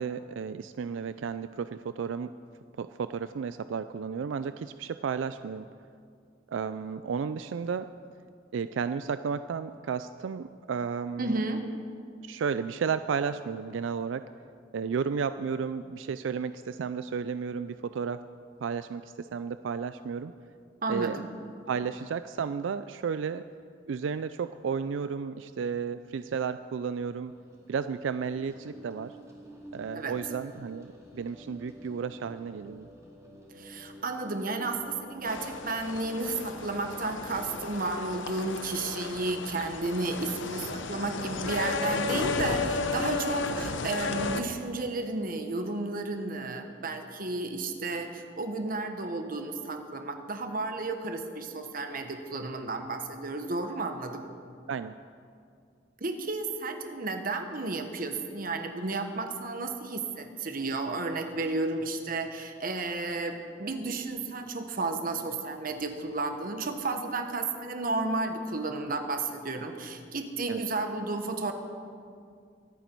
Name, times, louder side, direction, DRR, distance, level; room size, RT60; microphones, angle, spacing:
voice 1, 0.0-2.3 2.8-5.7 6.5-7.9 8.5-11.4 12.2-14.2 14.7-18.2 18.6-20.3 20.9-21.2 21.7-23.4 23.9-27.3 27.7-29.1 29.7-30.9 31.1-32.9 43.5-43.6 54.7-54.9 70.5-70.6, right 6 dB, 85° right, 12 dB, 0.4 m, -33 dB
voice 2, 11.2-11.8 20.8-21.3 29.9-30.2 33.6-54.2 56.0-71.5, right 3 dB, 50° right, 6 dB, 1.2 m, -32 dB
sound 1, 27.1-43.1, equal, 15° right, 2.3 m, -51 dB
sound 2, 35.3-44.4, left 4 dB, 85° left, 0.9 m, -33 dB
24.0 x 9.3 x 4.6 m, 2.3 s
head